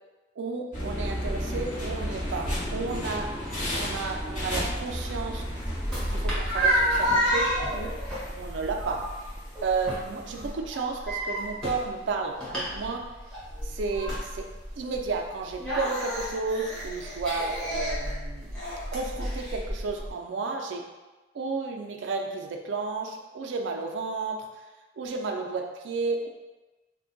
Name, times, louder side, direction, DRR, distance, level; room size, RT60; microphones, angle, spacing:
voice 1, 0.4-3.3 3.7-5.4 6.1-8.0 8.4-13.0 13.6-14.5 14.8-18.5 18.9-20.9 21.3-24.5 25.0-26.3, right 4 dB, 80° right, 2 dB, 0.4 m, -32 dB
sound 1, 0.7-10.5, equal, 45° left, 1.2 m, -33 dB
sound 2, 5.2-20.1, equal, 5° left, 1.0 m, -31 dB
2.5 x 2.2 x 3.8 m, 1.2 s
head